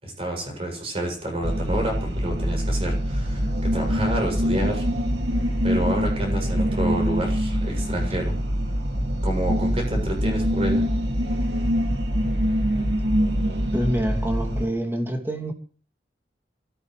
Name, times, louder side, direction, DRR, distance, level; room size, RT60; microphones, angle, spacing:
voice 1, 0.0-4.9 5.6-8.4 9.2-10.9, right 1 dB, 35° right, 7.3 m, -29 dB
sound 1, 1.4-14.7, equal, 70° right, 2.6 m, -24 dB
voice 2, 13.7-15.5, right 1 dB, 15° right, 2.8 m, -26 dB
26.5 x 15.5 x 3.4 m
head